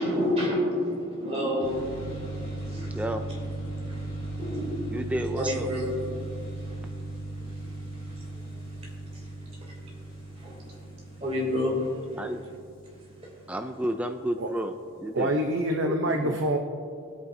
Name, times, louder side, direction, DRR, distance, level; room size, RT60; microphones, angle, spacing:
voice 1, 0.0-2.2 2.5-2.9 3.2-3.4 3.8-5.0 5.4-5.9 6.2-12.4 12.8-13.5, left 1 dB, 30° right, -3 dB, 2.7 m, -32 dB
sound 1, 1.6-14.1, right 2 dB, 25° left, 2.9 m, -37 dB
voice 2, 2.9-3.2 4.9-5.7 12.2-12.4 13.5-15.3 15.8-15.9 16.2-16.4, right 1 dB, 5° right, 5 dB, 0.3 m, -31 dB
voice 3, 15.1-16.6, right 1 dB, 65° right, 3 dB, 0.7 m, -26 dB
19.0 x 8.5 x 2.7 m, 2.3 s
head